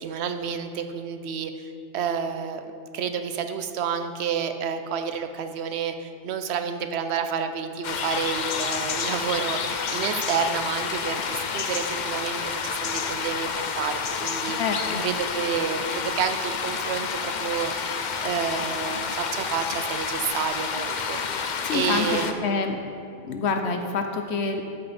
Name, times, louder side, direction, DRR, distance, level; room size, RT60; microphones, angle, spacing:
voice 1, 0.0-2.6 2.9-14.6 15.0-21.4 21.7-22.5, right 7 dB, 80° right, 8 dB, 0.9 m, -30 dB
sound 1, 7.8-22.3, left 6 dB, 55° left, 0.6 m, -29 dB
voice 2, 14.5-15.0 21.6-22.8 23.2-24.8, left 4 dB, 85° left, 5 dB, 1.1 m, -27 dB
12.5 x 5.3 x 4.2 m, 2.6 s
omnidirectional pair, 1.1 m